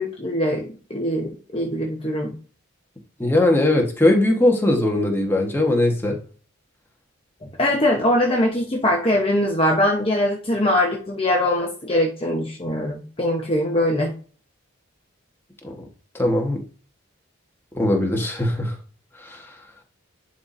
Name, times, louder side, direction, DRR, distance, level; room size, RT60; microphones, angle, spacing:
voice 1, 0.0-2.3 7.6-14.1, left 1 dB, 25° left, 0.9 m, -22 dB
voice 2, 3.2-6.2 15.6-15.9 16.1-16.6 17.7-18.7 19.2-19.5, left 1 dB, 10° left, 1.3 m, -20 dB
10.5 x 4.2 x 2.6 m
head